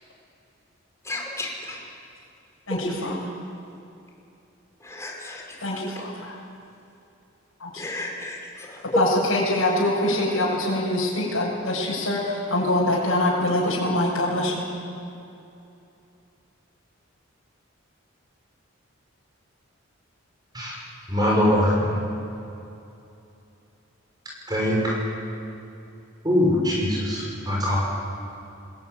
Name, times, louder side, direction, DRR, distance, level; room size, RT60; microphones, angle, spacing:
voice 1, 1.1-1.8 2.7-3.2 4.8-6.1 7.8-9.0 10.1-10.2, equal, 15° left, -1 dB, 5.2 m, -32 dB
voice 2, 2.7-3.2 5.6-6.1 7.6-7.7 9.0-12.2 12.5-14.6, left 1 dB, 80° left, -5 dB, 7.0 m, -24 dB
voice 3, 21.1-21.7 24.5-24.9 26.2-27.8, left 1 dB, 20° right, -3 dB, 6.4 m, -22 dB
28.0 x 20.5 x 9.6 m, 2.7 s
head